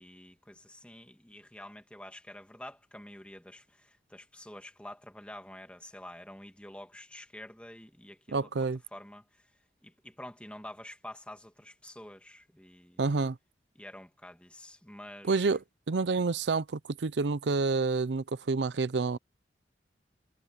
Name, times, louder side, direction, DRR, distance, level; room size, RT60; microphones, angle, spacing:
voice 1, 0.0-9.4 9.8-13.0 13.8-15.5, left 1 dB, 5° left, 1.9 m, -48 dB
voice 2, 8.3-8.8 13.0-13.4 15.2-15.6 15.9-19.2, right 4 dB, 85° right, 0.6 m, -28 dB
head